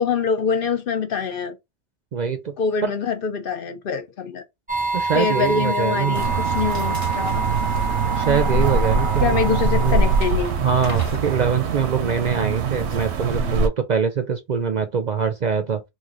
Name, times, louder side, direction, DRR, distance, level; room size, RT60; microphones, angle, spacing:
voice 1, 0.0-1.6 2.6-4.4 5.1-7.4 9.2-10.6, left 6 dB, 60° left, 0.8 m, -24 dB
voice 2, 2.1-2.5 2.8-3.0 4.9-6.3 8.2-9.4 9.7-10.1 10.6-15.8, right 6 dB, 55° right, 0.5 m, -23 dB
sound 1, 4.7-10.3, right 3 dB, 10° right, 0.6 m, -27 dB
sound 2, 6.1-13.3, left 1 dB, 15° left, 1.0 m, -42 dB
sound 3, 6.1-13.7, right 4 dB, 80° right, 0.9 m, -23 dB
3.1 x 2.5 x 3.7 m
omnidirectional pair, 1.1 m